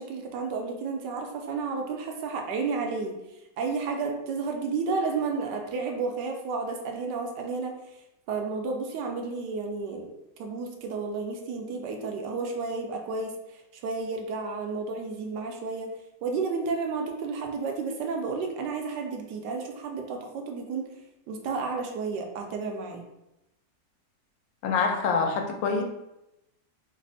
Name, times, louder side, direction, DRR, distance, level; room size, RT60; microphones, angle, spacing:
voice 1, 0.0-3.1 3.6-7.8 8.3-10.1 10.4-15.9 16.2-20.9 21.3-23.0, right 4 dB, 75° right, 3 dB, 1.1 m, -32 dB
voice 2, 24.6-25.8, left 5 dB, 85° left, 4 dB, 1.3 m, -25 dB
3.3 x 2.0 x 3.9 m, 0.89 s
omnidirectional pair, 2.0 m